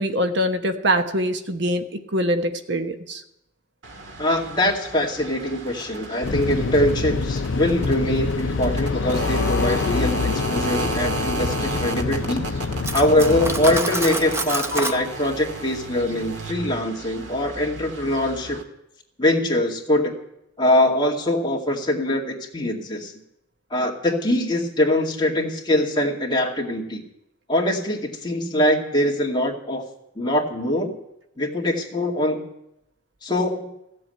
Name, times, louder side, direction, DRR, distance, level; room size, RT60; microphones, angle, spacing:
voice 1, 0.0-1.8 2.1-3.2, equal, 65° right, 7 dB, 1.2 m, -23 dB
sound 1, 3.8-18.6, right 2 dB, 90° right, 1.7 m, -33 dB
voice 2, 4.2-12.4 12.9-18.6 19.2-20.1 20.6-23.1 23.7-27.0 27.5-29.8 30.2-30.9 31.4-32.4 33.2-33.7, left 1 dB, 25° left, -1 dB, 2.3 m, -23 dB
sound 2, 6.2-13.8, left 4 dB, 80° left, 0.6 m, -26 dB
Cutlery silverware, 12.8-15.0, right 2 dB, 15° right, 0.7 m, -27 dB
16.0 x 7.7 x 9.2 m, 0.83 s
head